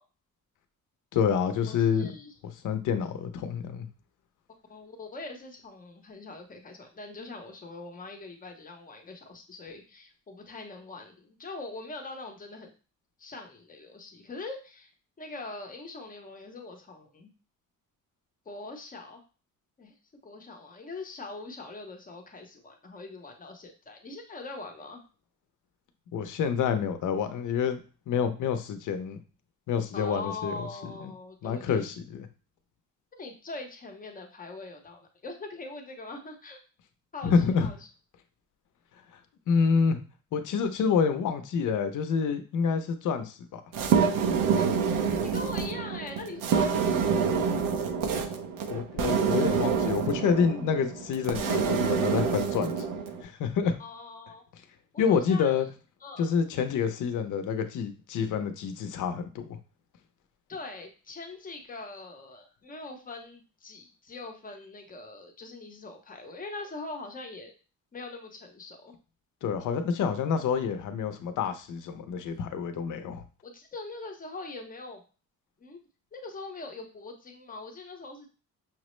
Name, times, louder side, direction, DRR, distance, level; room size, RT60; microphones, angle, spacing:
voice 1, 1.1-2.1 2.6-3.9 26.1-27.8 28.1-29.2 29.7-30.7 31.0-31.1 31.4-32.3 37.2-37.7 39.5-40.0 40.3-43.6 48.7-52.9 53.2-53.8 55.0-55.7 56.2-59.6 69.4-73.2, left 6 dB, 60° left, 8 dB, 0.6 m, -27 dB
voice 2, 1.7-2.3 4.7-12.7 13.2-14.9 15.2-17.3 18.5-19.2 19.8-19.9 20.2-25.0 29.9-31.9 33.1-36.6 37.1-37.8 44.5-44.6 44.9-47.1 53.8-54.4 54.9-55.6 56.0-56.4 60.5-67.5 67.9-68.9 73.4-75.0 75.6-75.8 76.1-78.3, left 3 dB, 25° left, 3 dB, 0.7 m, -42 dB
sound 1, 43.7-53.2, right 6 dB, 70° right, 0.6 m, -27 dB
5.7 x 2.0 x 3.1 m, 0.35 s
cardioid pair, 140°, 34 cm